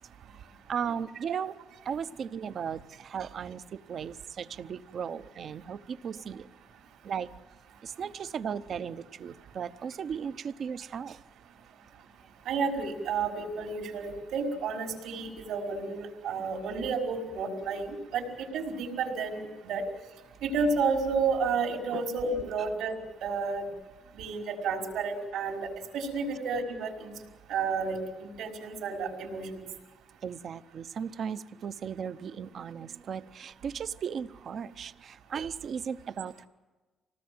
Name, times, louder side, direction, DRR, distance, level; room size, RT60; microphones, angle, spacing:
voice 1, 0.7-1.5 1.8-3.6 3.9-6.5 7.0-7.3 7.8-11.2 21.9-22.0 30.2-36.4, right 7 dB, 55° right, 13 dB, 0.8 m, -36 dB
voice 2, 12.5-19.8 20.4-23.0 23.2-23.7 24.1-25.7 25.9-27.1 27.5-29.7, right 4 dB, 90° right, 0 dB, 5.1 m, -31 dB
26.0 x 19.0 x 7.8 m, 1.3 s
cardioid pair, 90°, 0 cm